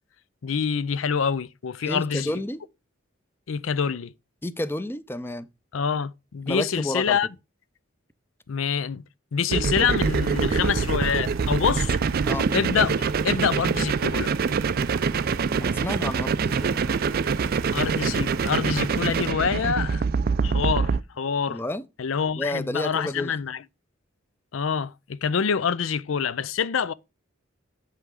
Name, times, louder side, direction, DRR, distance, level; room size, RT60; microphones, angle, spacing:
voice 1, 0.4-2.3 3.5-4.1 5.7-7.3 8.5-9.0 9.3-12.0 12.5-14.8 17.7-20.0 20.4-21.6 22.0-23.6 24.5-26.9, left 6 dB, 75° left, 0.5 m, -26 dB
voice 2, 1.9-2.6 4.4-5.5 6.5-7.2 12.3-12.5 15.6-16.8 21.5-21.8 22.4-23.3, left 1 dB, 10° left, 0.6 m, -30 dB
sound 1, 9.5-21.0, right 5 dB, 50° right, 0.4 m, -25 dB
sound 2, 9.9-19.3, right 5 dB, 85° right, 1.0 m, -41 dB
8.2 x 5.8 x 4.8 m
head